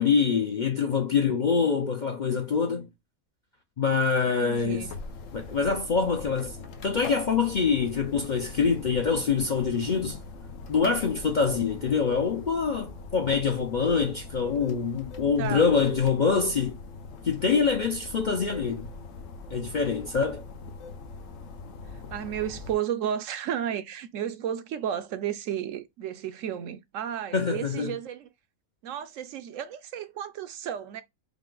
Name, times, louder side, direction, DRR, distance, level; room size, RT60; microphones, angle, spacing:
voice 1, 0.0-2.9 3.8-4.8 5.3-6.6 6.8-10.2 10.7-16.8 17.2-18.9 19.5-20.4 27.3-27.9, left 5 dB, 50° left, 0.5 m, -25 dB
sound 1, 4.4-22.8, left 3 dB, 70° left, 1.1 m, -42 dB
voice 2, 4.4-4.9 15.4-15.7 21.9-28.3 28.8-31.0, right 9 dB, 70° right, 0.9 m, -33 dB
5.1 x 2.1 x 3.8 m
omnidirectional pair, 1.4 m